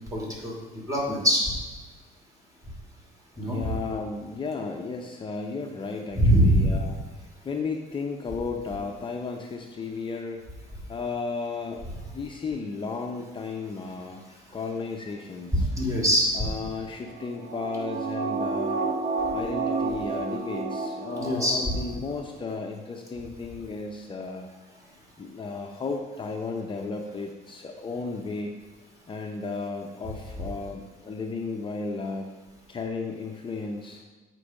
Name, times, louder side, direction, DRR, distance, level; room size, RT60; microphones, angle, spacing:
voice 1, 0.1-0.5 0.9-1.4 3.4-3.6 6.1-6.7 15.5-16.3 21.2-21.6, equal, 20° right, -2 dB, 2.8 m, -22 dB
voice 2, 3.4-7.0 7.4-10.4 10.9-11.8 12.1-14.2 14.5-15.7 16.3-18.8 19.3-24.5 25.2-28.5 29.1-32.3 32.7-34.0, left 4 dB, 30° left, 2 dB, 0.8 m, -34 dB
sound 1, 17.0-21.8 22.2-22.3, right 4 dB, 70° right, 1.2 m, -30 dB
8.4 x 4.6 x 6.4 m, 1.2 s
cardioid pair, 110°, 17 cm